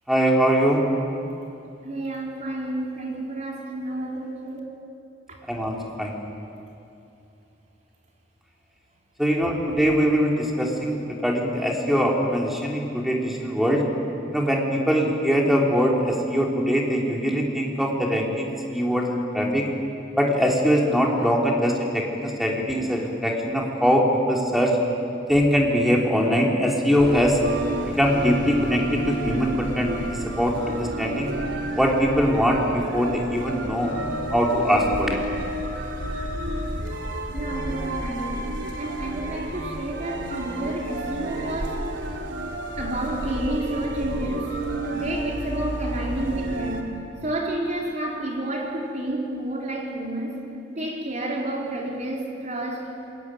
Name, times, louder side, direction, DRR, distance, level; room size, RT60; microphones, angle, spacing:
voice 1, 0.1-0.8 5.5-6.2 9.2-13.8 14.3-19.7 20.2-24.8 25.3-27.4 28.0-31.3 31.8-33.9 34.3-35.2, equal, ahead, -2 dB, 3.6 m, -22 dB
voice 2, 1.8-4.6 5.3-5.4 37.3-38.4 38.8-41.8 42.8-44.5 44.8-50.4 50.7-52.9, right 1 dB, 40° right, -2 dB, 4.7 m, -30 dB
sound 1, 27.0-46.8, right 1 dB, 80° right, 3.1 m, -31 dB
27.5 x 21.0 x 9.3 m, 2.7 s
head